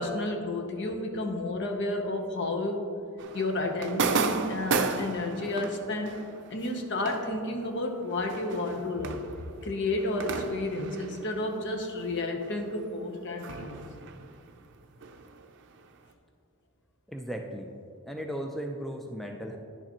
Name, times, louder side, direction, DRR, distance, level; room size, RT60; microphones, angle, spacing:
voice 1, 0.0-2.9 3.3-6.2 6.5-9.2 9.6-13.8, left 2 dB, 55° left, 4 dB, 0.9 m, -31 dB
sound 1, 3.2-12.2 12.4-16.0, right 5 dB, 55° right, 0.5 m, -35 dB
voice 2, 17.1-17.7 18.0-19.6, equal, ahead, 2 dB, 0.3 m, -36 dB
10.5 x 6.5 x 3.0 m, 2.5 s
head